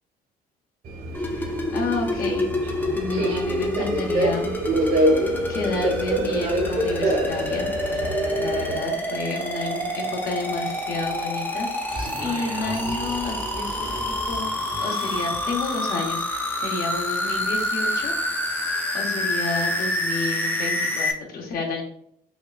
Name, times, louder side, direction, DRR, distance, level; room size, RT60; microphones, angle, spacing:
Subway metro underground, 0.8-8.8, right 1 dB, 55° right, 1.2 m, -26 dB
sound 1, 1.1-21.1, left 1 dB, 10° left, 0.5 m, -27 dB
voice 1, 1.3-2.5 2.9-4.6 4.8-7.7 8.4-18.1 18.6-21.8, left 3 dB, 60° left, 1 dB, 0.9 m, -31 dB
sound 2, 11.9-15.7, right 3 dB, 30° right, 0.7 m, -36 dB
5.3 x 2.3 x 2.4 m, 0.68 s
cardioid pair, 110°, 17 cm